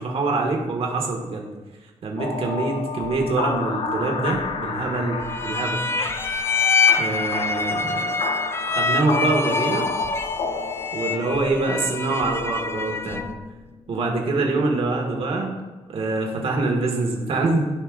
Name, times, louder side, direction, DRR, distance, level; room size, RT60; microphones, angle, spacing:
voice 1, 0.0-1.5 2.0-5.8 7.0-8.0 8.7-9.9 10.9-13.3 13.9-15.6 15.9-17.7, right 3 dB, 55° right, 1 dB, 1.7 m, -25 dB
sound 1, 2.2-15.3, left 4 dB, 55° left, 0.7 m, -31 dB
sound 2, 5.3-13.4, left 4 dB, 20° left, 0.4 m, -25 dB
15.0 x 5.5 x 2.5 m, 1.2 s
wide cardioid pair, 170°, 11 cm